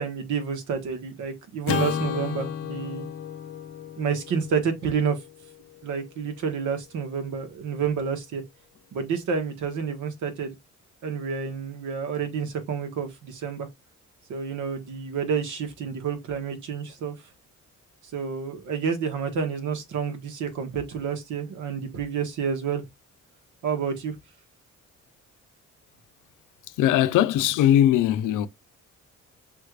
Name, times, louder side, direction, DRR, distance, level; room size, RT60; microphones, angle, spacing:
voice 1, 0.0-3.1 4.0-5.2 5.8-8.4 8.9-10.5 11.0-13.7 14.3-17.1 18.1-22.8 23.6-24.1, right 6 dB, 75° right, 1.3 m, -29 dB
Acoustic guitar / Strum, 1.6-6.1, left 9 dB, 50° left, 0.6 m, -33 dB
voice 2, 26.8-28.5, left 11 dB, 90° left, 0.6 m, -20 dB
5.4 x 3.2 x 2.4 m
cardioid pair, 90°, 30 cm